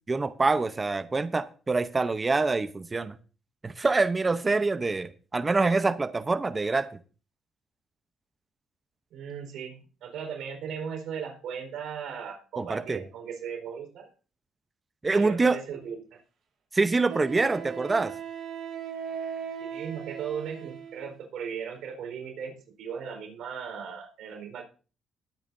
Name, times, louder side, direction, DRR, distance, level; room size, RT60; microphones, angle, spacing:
voice 1, 0.1-3.2 3.6-6.9 12.6-13.0 15.0-15.6 16.7-18.1, right 3 dB, 25° right, 0.8 m, -25 dB
voice 2, 9.1-14.1 15.1-16.2 19.6-22.5 22.8-24.6, right 7 dB, 80° right, 4.4 m, -37 dB
Wind instrument woodwind instrument, 15.8-15.9 17.1-21.2, right 8 dB, 60° right, 7.4 m, -38 dB
20.5 x 8.8 x 2.7 m
cardioid pair, 90°, 0 cm